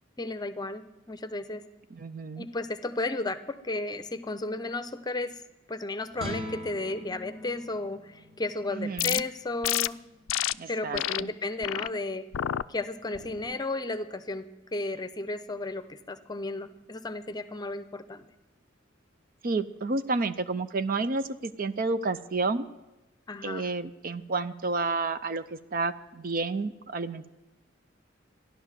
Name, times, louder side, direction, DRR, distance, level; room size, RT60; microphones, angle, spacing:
voice 1, 0.2-1.6 2.4-5.3 5.7-10.0 10.7-12.2 12.7-14.4 14.7-18.3 23.3-23.7, left 2 dB, 20° left, 12 dB, 0.8 m, -33 dB
voice 2, 1.9-2.5 8.8-9.2 10.6-11.3 19.4-22.7 23.4-27.3, right 3 dB, 45° right, 12 dB, 0.6 m, -30 dB
sound 1, 6.1-12.5, equal, 30° right, 2.1 m, -44 dB
sound 2, 9.0-9.2 9.6-9.9 10.3-10.5 11.0-11.2 11.6-11.9 12.3-12.6 13.1-13.5, left 13 dB, 90° left, 0.4 m, -29 dB
14.0 x 11.0 x 7.4 m, 1.0 s
head